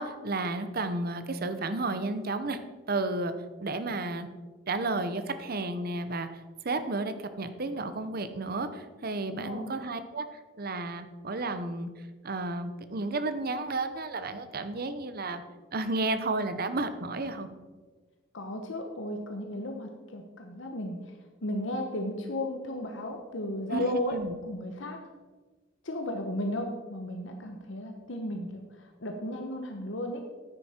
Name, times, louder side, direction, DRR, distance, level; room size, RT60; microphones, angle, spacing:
voice 1, 0.0-2.6 2.9-3.3 3.6-4.3 4.7-6.3 6.6-11.9 12.2-15.4 15.7-17.5 23.7-24.3, right 2 dB, 50° right, 10 dB, 0.8 m, -32 dB
voice 2, 9.3-9.7 18.3-21.1 21.4-24.2 24.4-25.0 25.8-30.2, left 1 dB, 75° left, 4 dB, 1.1 m, -34 dB
10.0 x 9.4 x 4.4 m, 1.3 s
head